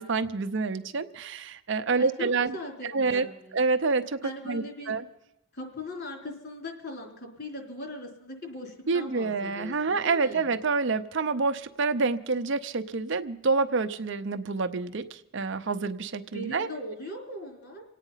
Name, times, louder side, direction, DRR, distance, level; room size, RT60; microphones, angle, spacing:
voice 1, 0.0-2.6 2.9-3.2 3.5-4.2 4.4-5.0 8.9-16.7, right 4 dB, 55° right, 9 dB, 0.6 m, -27 dB
voice 2, 1.9-3.6 4.2-5.0 5.5-10.5 16.3-17.8, left 1 dB, 45° left, 2 dB, 3.7 m, -40 dB
26.0 x 9.1 x 5.6 m, 0.87 s
head